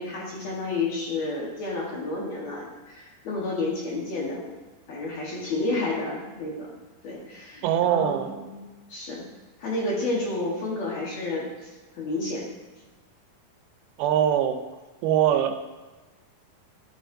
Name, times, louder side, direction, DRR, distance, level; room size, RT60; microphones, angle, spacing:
voice 1, 0.0-4.4 4.9-6.7 7.0-8.6 8.9-9.2 9.6-11.7 12.0-12.5, left 2 dB, 55° left, -3 dB, 2.1 m, -30 dB
voice 2, 7.6-8.3 14.0-14.6 15.0-15.6, right 10 dB, 85° right, 8 dB, 2.5 m, -22 dB
11.5 x 8.0 x 2.6 m, 1.2 s
omnidirectional pair, 4.3 m